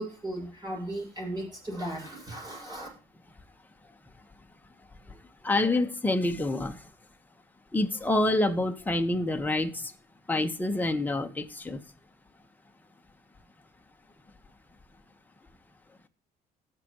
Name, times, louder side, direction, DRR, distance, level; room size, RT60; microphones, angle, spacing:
voice 1, 0.0-2.9, right 1 dB, 25° right, 6.9 m, -36 dB
voice 2, 5.4-6.7 7.7-9.9 10.3-11.8, left 2 dB, 10° left, 1.4 m, -27 dB
18.5 x 6.8 x 3.1 m
cardioid pair, 110°, 17 cm